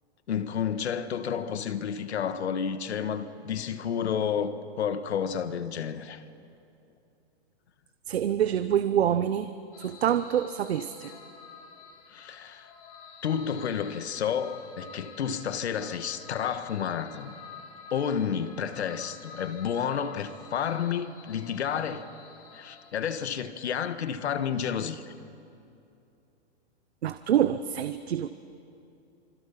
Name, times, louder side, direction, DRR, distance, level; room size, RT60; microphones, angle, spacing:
voice 1, 0.3-6.2 12.1-12.7 13.2-17.3 17.9-22.0 22.5-25.1, left 8 dB, 80° left, 1.6 m, -30 dB
voice 2, 8.1-9.5 9.8-11.1 27.0-28.3, right 10 dB, 75° right, 0.9 m, -26 dB
sound 1, 9.7-22.9, left 5 dB, 35° left, 2.3 m, -49 dB
26.5 x 25.0 x 5.9 m
hypercardioid pair, 180°, 32 cm